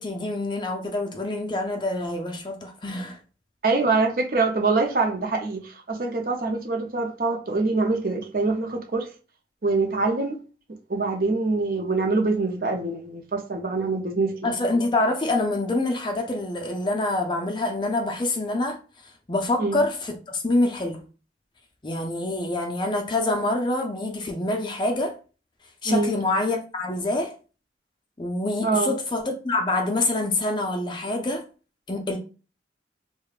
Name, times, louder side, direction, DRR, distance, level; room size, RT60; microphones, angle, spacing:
voice 1, 0.0-3.2 14.4-18.8 19.3-21.0 21.8-25.2 25.8-27.4 28.2-31.4 31.9-32.2, left 2 dB, 25° left, 0.5 m, -26 dB
voice 2, 3.6-9.1 9.6-10.4 10.9-14.5 19.6-19.8 25.8-26.1 28.6-28.9, right 3 dB, 50° right, 0.6 m, -24 dB
4.8 x 2.2 x 2.4 m
head